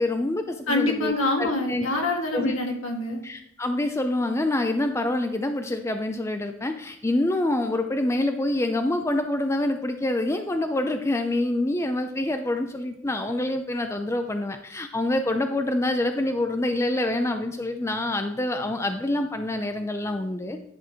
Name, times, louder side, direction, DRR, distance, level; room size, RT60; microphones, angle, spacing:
voice 1, 0.0-1.9 2.3-2.6 3.2-20.6, left 1 dB, 15° left, 6 dB, 0.4 m, -26 dB
voice 2, 0.7-3.2, left 2 dB, 75° left, 1 dB, 1.6 m, -25 dB
10.0 x 4.7 x 4.5 m, 0.73 s
head